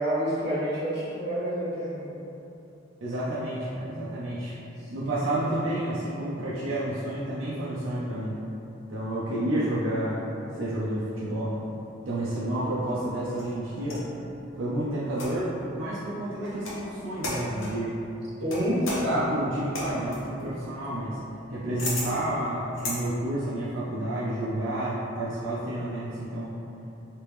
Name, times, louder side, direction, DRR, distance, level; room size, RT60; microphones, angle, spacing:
voice 1, 0.0-2.1 18.4-18.8, equal, 60° right, -9 dB, 1.2 m, -28 dB
voice 2, 3.0-4.5 4.9-8.4 8.9-11.6 12.1-14.0 14.6-17.9 18.9-21.2 21.5-26.6, right 1 dB, 90° right, -8 dB, 0.5 m, -30 dB
sound 1, 12.8-14.1 15.1-15.6 16.4-16.8 17.2-17.8 18.5-23.0, left 2 dB, 85° left, 0.8 m, -36 dB
3.3 x 3.0 x 3.1 m, 2.8 s
head